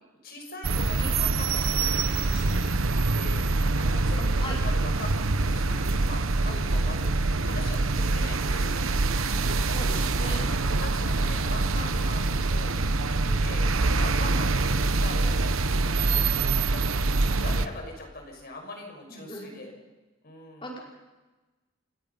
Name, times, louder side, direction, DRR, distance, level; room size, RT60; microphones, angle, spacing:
voice 1, 0.2-2.8 3.1-3.5 3.7-7.1 7.4-8.9 10.2-13.6 13.9-15.5 15.8-16.3 16.6-19.7 20.2-20.7, left 2 dB, 50° left, 2 dB, 6.1 m, -42 dB
sound 1, 0.6-17.7, right 3 dB, 80° right, 1.1 m, -25 dB
voice 2, 4.2-4.6 6.5-6.9 9.7-10.8 16.4-16.6 19.1-19.5 20.6-20.8, equal, 25° left, -2 dB, 5.4 m, -40 dB
30.0 x 17.0 x 5.7 m, 1.1 s
head